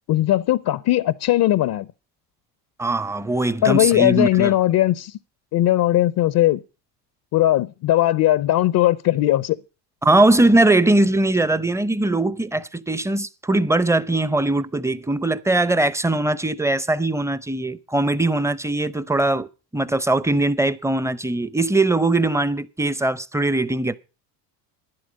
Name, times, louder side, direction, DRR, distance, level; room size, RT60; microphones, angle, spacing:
voice 1, 0.1-1.9 3.6-5.1 5.5-6.6 7.3-9.6, left 14 dB, 45° left, 0.6 m, -18 dB
voice 2, 2.8-4.5 10.0-19.5 19.7-23.9, right 2 dB, 5° right, 0.6 m, -20 dB
12.0 x 10.5 x 5.2 m
hypercardioid pair, 80°, 50 cm